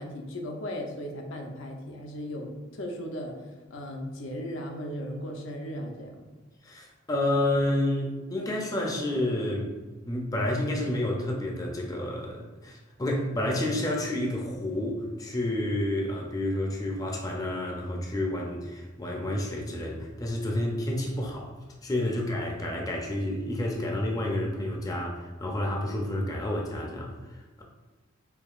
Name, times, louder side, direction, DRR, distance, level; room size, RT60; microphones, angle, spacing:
voice 1, 0.0-3.4 3.7-6.3 22.1-22.2 22.6-22.7, equal, 80° left, 2 dB, 0.6 m, -37 dB
voice 2, 6.6-9.7 10.1-21.5 21.8-27.6, left 1 dB, 20° left, 0 dB, 0.4 m, -30 dB
4.6 x 2.7 x 2.4 m, 1.2 s
head